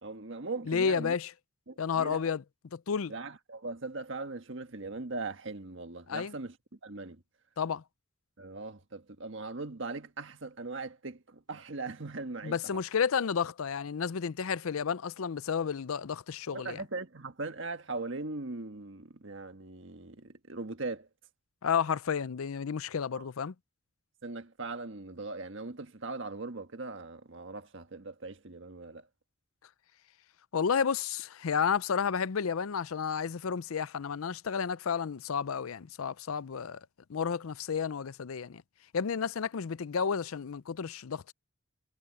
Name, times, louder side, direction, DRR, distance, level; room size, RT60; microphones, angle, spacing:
voice 1, 0.0-1.2 1.7-2.2 3.1-6.5 6.8-7.2 8.4-12.8 16.5-21.1 23.1-23.2 24.2-29.1, right 3 dB, 60° right, 1.5 m, -40 dB
voice 2, 0.7-1.3 1.8-2.4 2.7-3.1 6.1-6.3 7.6-7.8 12.4-16.8 21.6-23.5 30.5-36.8 37.1-38.6 38.9-41.3, left 6 dB, 80° left, 0.5 m, -31 dB
head